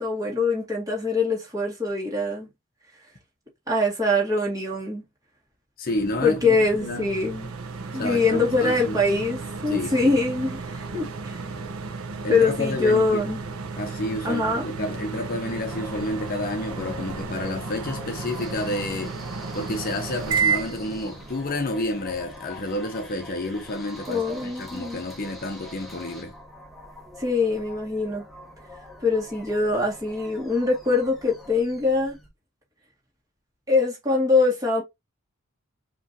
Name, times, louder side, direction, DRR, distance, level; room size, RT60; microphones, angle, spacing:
voice 1, 0.0-2.5 3.7-5.0 6.2-7.5 7.9-11.5 12.3-13.4 14.2-14.7 24.1-25.0 27.2-28.3 29.0-32.2 33.7-34.8, left 3 dB, 15° right, 2.0 m, -23 dB
voice 2, 5.8-6.6 6.8-7.1 7.9-9.0 9.7-10.1 12.2-13.2 13.7-19.1 19.5-26.3, left 1 dB, 40° left, 0.7 m, -30 dB
sound 1, 5.9-22.3, right 4 dB, 85° right, 0.9 m, -33 dB
sound 2, 15.7-32.3, left 1 dB, ahead, 1.1 m, -44 dB
5.0 x 3.0 x 2.8 m
head